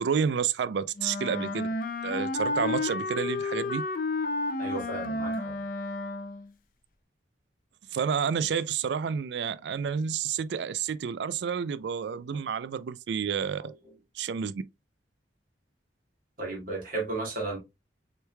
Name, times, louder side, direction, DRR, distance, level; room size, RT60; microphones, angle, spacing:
voice 1, 0.0-1.6 2.0-3.8 7.9-13.7 14.2-14.6, right 7 dB, 65° right, 0.3 m, -30 dB
Wind instrument woodwind instrument, 1.0-6.5, left 2 dB, 50° left, 0.5 m, -31 dB
voice 2, 4.6-5.6 13.6-13.9 16.4-17.6, right 3 dB, 45° right, 1.9 m, -34 dB
6.5 x 3.1 x 2.2 m
head